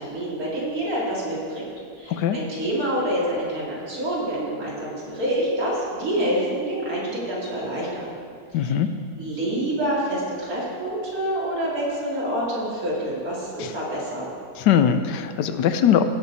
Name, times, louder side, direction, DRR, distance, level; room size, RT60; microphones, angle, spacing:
voice 1, 0.0-1.6 1.9-8.1 8.5-8.8 9.2-14.3, right 1 dB, 55° right, -6 dB, 3.0 m, -27 dB
voice 2, 8.5-8.9 13.6-13.7 14.6-16.0, left 8 dB, 80° left, 9 dB, 1.2 m, -20 dB
17.0 x 6.3 x 4.1 m, 2.2 s
omnidirectional pair, 1.9 m